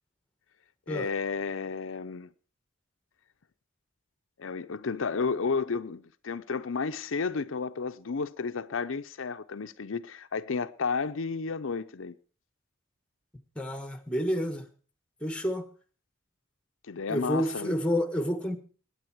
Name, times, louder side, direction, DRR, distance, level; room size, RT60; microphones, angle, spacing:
voice 1, 0.9-2.3 4.4-12.1 16.9-17.8, left 5 dB, 85° left, 0.6 m, -32 dB
voice 2, 13.5-14.6 15.2-15.7 17.1-18.6, equal, 5° left, 1.3 m, -29 dB
20.5 x 9.4 x 4.6 m
head